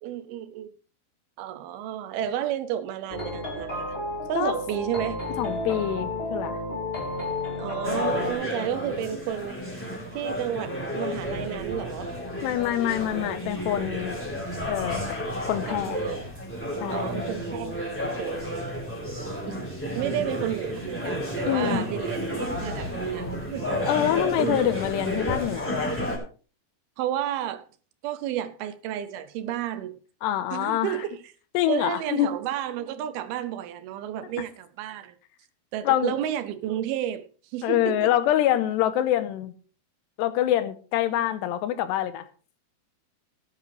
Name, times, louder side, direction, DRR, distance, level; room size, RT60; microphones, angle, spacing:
voice 1, 0.0-0.7 1.4-4.0 4.3-5.2 7.6-9.6 10.1-12.1 15.7-16.3 16.9-18.7 19.5-23.8 24.0-24.7 27.0-27.6 28.0-30.0 30.5-31.2 31.7-35.1 35.7-38.1, right 11 dB, 80° right, 2.4 m, -32 dB
sound 1, 3.1-8.3, left 2 dB, 20° left, 1.8 m, -32 dB
voice 2, 5.4-6.6 12.4-14.2 14.7-15.2 15.5-16.0 16.8-17.0 21.5-21.9 23.9-26.0 30.2-31.0 31.5-32.3 35.8-36.1 37.6-39.5 40.2-42.3, left 12 dB, 90° left, 3.1 m, -25 dB
sound 2, 7.8-26.2, equal, 5° left, 3.2 m, -31 dB
17.5 x 9.5 x 3.2 m
omnidirectional pair, 4.8 m